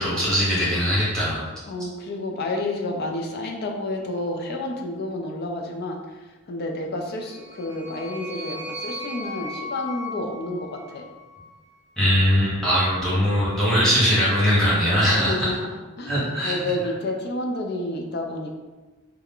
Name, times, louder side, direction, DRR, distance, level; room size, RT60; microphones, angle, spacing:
voice 1, 0.0-1.4 12.0-15.5 16.1-16.5, equal, 5° left, -9 dB, 0.9 m, -21 dB
voice 2, 1.7-11.1 15.0-18.5, left 2 dB, 50° left, 2 dB, 0.4 m, -30 dB
sound 1, 7.1-11.5, left 1 dB, 60° right, 0.6 m, -37 dB
2.3 x 2.1 x 3.6 m, 1.2 s
head